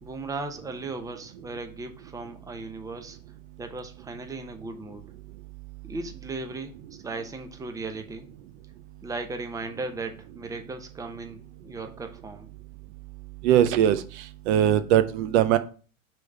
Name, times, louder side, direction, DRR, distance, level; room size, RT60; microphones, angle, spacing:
voice 1, 0.0-3.2 3.6-5.1 5.8-6.8 7.0-8.3 9.0-12.5, right 3 dB, 10° right, 6 dB, 0.8 m, -36 dB
voice 2, 13.4-14.0 14.5-15.6, right 10 dB, 50° right, 12 dB, 0.7 m, -20 dB
6.1 x 3.5 x 5.7 m, 0.38 s
hypercardioid pair, 110°, 43 cm